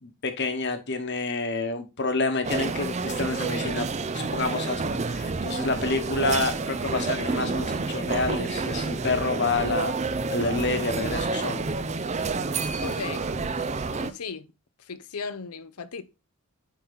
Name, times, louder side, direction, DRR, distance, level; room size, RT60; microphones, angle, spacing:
voice 1, 0.0-3.9 4.1-9.9 10.3-11.7 12.1-12.2, left 3 dB, 50° left, 1.2 m, -28 dB
sound 1, 2.4-14.1, right 4 dB, 30° right, 0.5 m, -29 dB
voice 2, 12.8-13.3 13.9-14.5 14.8-16.0, left 5 dB, 90° left, 0.7 m, -36 dB
9.9 x 3.9 x 4.1 m
head